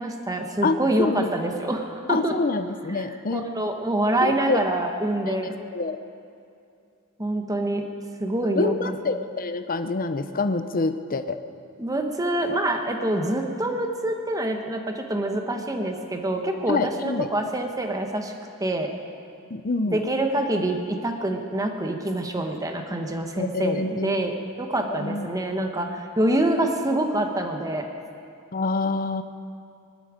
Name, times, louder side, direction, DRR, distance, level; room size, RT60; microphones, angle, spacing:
voice 1, 0.0-2.4 2.9-3.1 3.3-5.5 7.2-7.8 8.2-8.9 11.8-18.3 18.6-18.9 19.9-27.9, right 1 dB, 15° right, 4 dB, 1.2 m, -26 dB
voice 2, 0.6-1.3 2.1-3.5 4.2-4.6 5.3-6.0 8.4-11.4 16.7-17.3 19.5-20.0 23.4-24.3 24.9-25.3 28.5-29.2, left 3 dB, 40° left, 9 dB, 0.7 m, -26 dB
23.0 x 12.0 x 5.1 m, 2.5 s
head